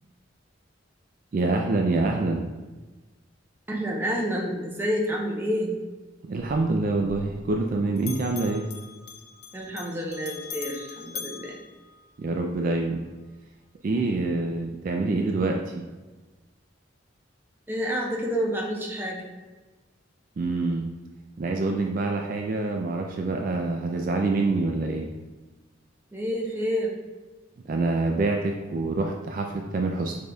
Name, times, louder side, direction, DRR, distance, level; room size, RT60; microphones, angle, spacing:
voice 1, 1.3-2.5 6.3-8.7 12.2-13.0 13.8-15.6 20.4-20.9 21.4-25.1 27.7-30.2, right 3 dB, 45° right, 2 dB, 0.3 m, -26 dB
voice 2, 3.7-5.7 9.5-11.6 17.7-19.3 26.1-26.9, equal, 10° right, -2 dB, 0.7 m, -29 dB
Bell, 6.3-7.7 8.0-12.5, left 6 dB, 55° left, 0.5 m, -42 dB
6.4 x 3.5 x 2.3 m, 1.2 s
head